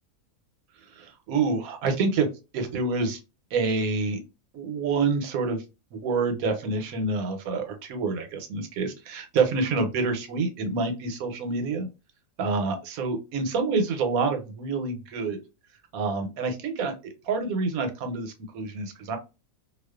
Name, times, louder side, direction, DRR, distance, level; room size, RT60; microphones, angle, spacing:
voice 1, 0.9-2.3 2.5-3.2 3.5-4.2 4.5-5.6 5.9-11.9 12.4-15.4 15.9-19.2, right 4 dB, 85° right, 6 dB, 1.1 m, -27 dB
2.4 x 2.3 x 2.3 m, 0.28 s
omnidirectional pair, 1.5 m